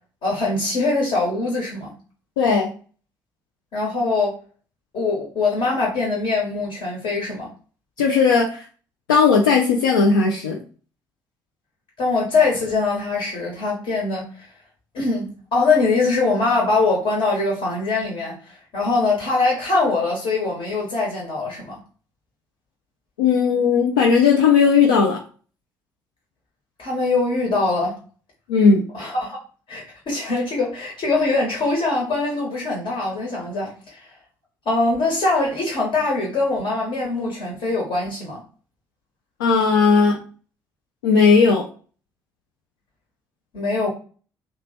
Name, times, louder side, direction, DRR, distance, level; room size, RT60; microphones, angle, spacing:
voice 1, 0.2-1.9 3.7-4.4 4.9-7.5 12.0-14.5 14.9-21.8 26.8-28.0 28.9-29.4 29.7-34.1 34.6-38.4 43.5-43.9, left 3 dB, 60° left, -2 dB, 1.2 m, -22 dB
voice 2, 2.4-2.7 8.0-8.6 9.1-10.6 23.2-25.2 28.5-28.8 39.4-40.2 41.0-41.7, left 5 dB, 80° left, -1 dB, 0.4 m, -16 dB
3.0 x 2.2 x 4.0 m, 0.38 s
figure-of-eight pair, 45°, 11 cm